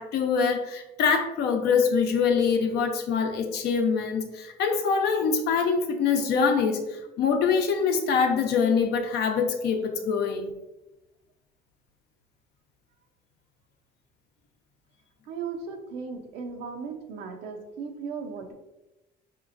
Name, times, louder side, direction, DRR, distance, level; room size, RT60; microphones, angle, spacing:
voice 1, 0.0-6.8 7.2-10.5, left 5 dB, 75° left, 5 dB, 0.6 m, -24 dB
voice 2, 15.3-18.5, right 5 dB, 85° right, 4 dB, 0.6 m, -36 dB
4.8 x 2.9 x 2.5 m, 1.0 s
cardioid pair, 110°, 17 cm